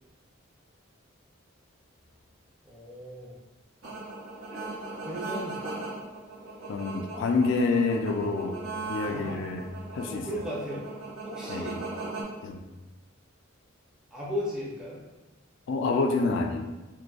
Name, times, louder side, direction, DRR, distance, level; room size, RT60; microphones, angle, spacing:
voice 1, 2.6-3.4 5.0-5.6 9.0-9.4 10.1-10.9 11.2-11.7 14.1-15.0, left 1 dB, 5° right, -7 dB, 0.5 m, -36 dB
sound 1, 3.8-12.2, right 3 dB, 85° right, 0.9 m, -38 dB
voice 2, 6.7-8.6 8.9-9.6 9.9-10.4 11.5-11.8 12.4-12.6 15.7-16.7, left 3 dB, 60° left, 4 dB, 0.3 m, -27 dB
3.9 x 2.6 x 2.3 m, 1.1 s
head